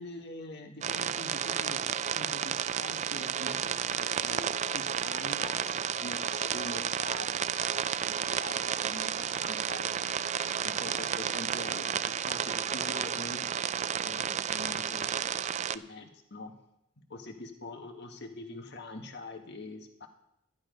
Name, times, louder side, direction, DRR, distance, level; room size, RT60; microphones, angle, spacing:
voice 1, 0.0-7.5 7.7-9.9 10.6-13.4 14.0-16.5 17.0-20.1, left 2 dB, 60° left, 4 dB, 1.7 m, -44 dB
sound 1, 0.8-15.8, right 8 dB, 35° right, 0.4 m, -32 dB
11.5 x 11.5 x 5.2 m, 0.80 s
head